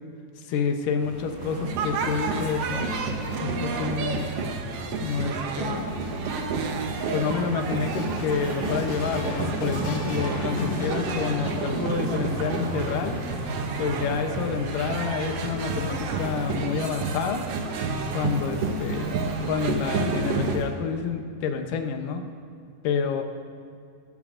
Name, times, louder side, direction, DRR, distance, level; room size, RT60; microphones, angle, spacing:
voice 1, 0.4-4.3 5.0-6.0 7.1-13.2 13.8-17.5 18.1-22.2 22.8-23.2, left 6 dB, 80° left, 5 dB, 2.4 m, -29 dB
sound 1, 1.0-20.6, equal, 50° right, 4.5 m, -37 dB
sound 2, 1.4-20.6, right 4 dB, 75° right, 1.4 m, -30 dB
sound 3, 4.0-11.8 12.6-13.5, left 2 dB, 45° left, 2.3 m, -37 dB
20.5 x 12.0 x 2.6 m, 2.4 s
omnidirectional pair, 3.9 m